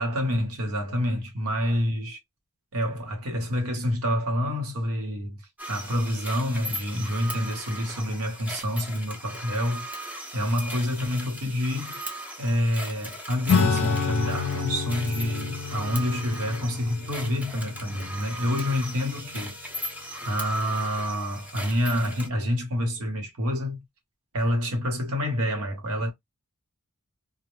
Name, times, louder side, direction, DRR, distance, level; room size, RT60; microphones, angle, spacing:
voice 1, 0.0-2.2 2.7-5.4 5.7-9.9 10.3-12.0 12.4-19.5 20.2-23.8 24.3-26.1, left 1 dB, 70° right, 1.0 m, -27 dB
sound 1, 5.6-22.3, equal, 5° right, 0.6 m, -38 dB
Acoustic guitar / Strum, 13.5-19.4, left 5 dB, 65° left, 0.4 m, -29 dB
2.1 x 2.1 x 3.0 m
head